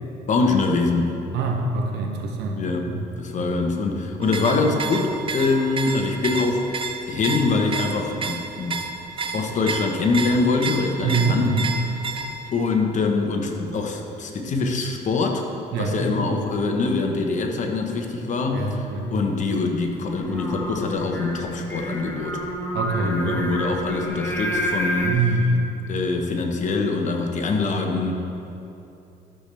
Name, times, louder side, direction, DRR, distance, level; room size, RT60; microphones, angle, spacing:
voice 1, 0.3-1.2 2.6-6.6 7.1-8.9 9.3-11.4 12.5-15.4 15.8-18.8 19.1-22.4 23.0-25.4 25.9-28.1, left 3 dB, 45° left, 3 dB, 1.1 m, -24 dB
voice 2, 1.3-2.6 2.9-3.0 3.4-3.6 11.0-11.7 15.7-16.2 18.5-19.2 22.7-23.6 25.0-25.6, right 3 dB, 85° right, 2 dB, 1.1 m, -24 dB
sound 1, 4.2-12.5, right 4 dB, 30° right, 0.5 m, -31 dB
Singing, 20.1-25.1, equal, 10° left, 1.2 m, -28 dB
12.5 x 6.8 x 3.4 m, 2.8 s
cardioid pair, 110°, 17 cm